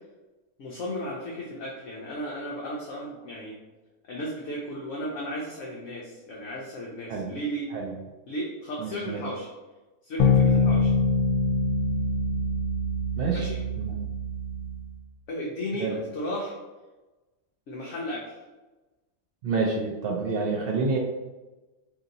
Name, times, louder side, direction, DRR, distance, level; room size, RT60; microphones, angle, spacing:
voice 1, 0.6-3.6 4.0-7.7 8.3-9.5 10.0-10.9 13.3-13.6 15.3-16.6 17.7-18.4, equal, 65° left, -3 dB, 0.9 m, -34 dB
voice 2, 8.8-9.2 13.2-13.4 13.8-13.9 15.8-16.0 19.4-21.0, right 4 dB, 75° right, -1 dB, 0.5 m, -28 dB
sound 1, 10.2-15.0, left 2 dB, 90° left, 1.1 m, -24 dB
2.9 x 2.6 x 3.8 m, 1.1 s
omnidirectional pair, 1.5 m